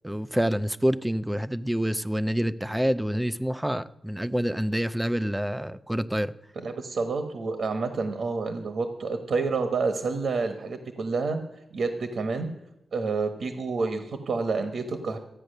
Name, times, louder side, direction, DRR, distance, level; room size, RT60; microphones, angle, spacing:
voice 1, 0.0-6.3, equal, 5° right, 14 dB, 0.4 m, -27 dB
voice 2, 6.5-11.4 11.7-12.5 12.9-15.2, right 4 dB, 60° right, 7 dB, 1.2 m, -29 dB
14.0 x 9.1 x 6.6 m, 0.89 s
wide cardioid pair, 180°, 0 cm